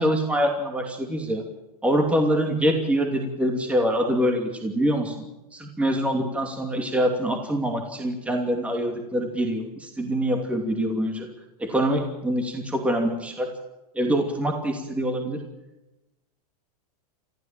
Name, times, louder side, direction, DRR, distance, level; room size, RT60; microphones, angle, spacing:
voice 1, 0.0-1.4 1.8-5.3 5.5-11.3 11.7-13.5 13.9-15.4, equal, 5° right, 3 dB, 2.7 m, -25 dB
29.5 x 14.5 x 7.5 m, 1.0 s
supercardioid pair, 135°, 20 cm